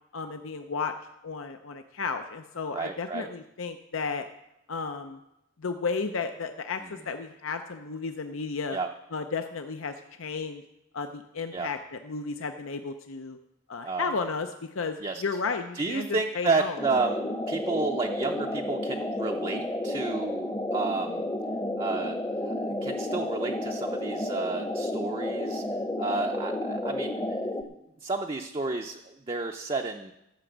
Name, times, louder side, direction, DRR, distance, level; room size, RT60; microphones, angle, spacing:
voice 1, 0.1-0.9 1.2-4.2 4.7-5.2 5.6-8.8 9.1-10.6 10.9-13.4 13.7-16.8, left 4 dB, 80° left, 7 dB, 0.6 m, -33 dB
voice 2, 2.7-3.3 8.7-8.9 11.5-11.7 13.8-14.1 15.0-15.2 15.7-21.3 21.8-25.6 26.0-27.4 28.0-30.1, right 3 dB, 25° right, 3 dB, 0.5 m, -31 dB
sound 1, 16.8-27.6, left 1 dB, 15° left, 0.7 m, -31 dB
13.5 x 6.1 x 7.9 m, 0.89 s
head